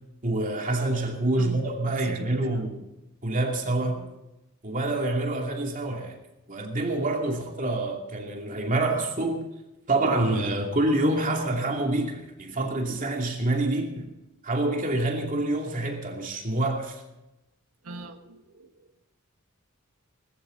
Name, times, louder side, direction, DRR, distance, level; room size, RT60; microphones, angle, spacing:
voice 1, 0.2-2.8 3.2-4.0 4.6-6.2 6.5-9.5 9.9-14.1 14.4-17.0, right 2 dB, 40° right, 2.5 m, -27 dB
voice 2, 1.4-2.7 3.6-4.1 17.8-18.9, right 2 dB, 85° right, 1.4 m, -42 dB
20.0 x 14.0 x 3.9 m
head